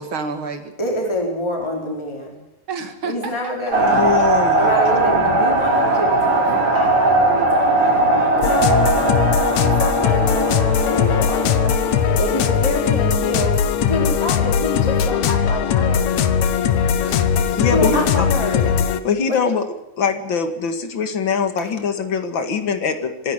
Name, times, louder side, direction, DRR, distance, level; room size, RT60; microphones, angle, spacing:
voice 1, 0.0-0.7 2.7-3.5 17.0-17.6, right 4 dB, 45° right, 7 dB, 2.7 m, -30 dB
voice 2, 0.8-2.4 3.0-4.1 4.5-16.2 17.7-18.8 19.3-19.4, left 1 dB, 10° left, 1 dB, 4.2 m, -27 dB
sound 1, 3.7-12.8, right 2 dB, 80° right, 5.8 m, -19 dB
voice 3, 3.8-4.8 17.6-18.3 19.0-19.7 20.0-23.3, left 6 dB, 45° left, 7 dB, 2.3 m, -22 dB
sound 2, 8.4-19.0, left 7 dB, 70° left, 2.4 m, -19 dB
26.0 x 11.0 x 10.0 m, 0.90 s
omnidirectional pair, 3.4 m